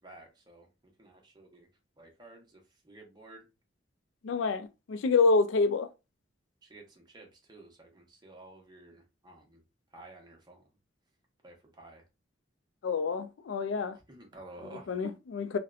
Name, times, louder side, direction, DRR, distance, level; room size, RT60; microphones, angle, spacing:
voice 1, 0.0-1.7 2.0-3.5 6.6-9.6 9.9-10.7 11.4-12.0 14.1-15.1, right 2 dB, 20° right, 0.7 m, -52 dB
voice 2, 4.2-5.9 12.8-14.0 14.9-15.6, left 4 dB, 70° left, 0.3 m, -27 dB
2.7 x 2.1 x 2.4 m
head